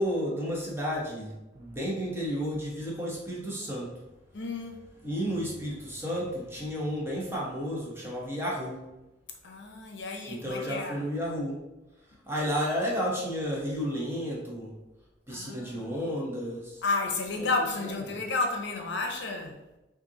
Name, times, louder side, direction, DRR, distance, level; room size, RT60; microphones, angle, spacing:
voice 1, 0.0-3.9 5.0-8.9 10.3-11.6 12.3-14.7 15.3-16.8 17.4-18.2, equal, 15° right, -4 dB, 1.0 m, -32 dB
voice 2, 4.3-4.9 9.4-11.0 15.3-15.9 16.8-19.6, left 3 dB, 70° left, 3 dB, 0.7 m, -32 dB
5.6 x 2.6 x 2.8 m, 1.0 s
head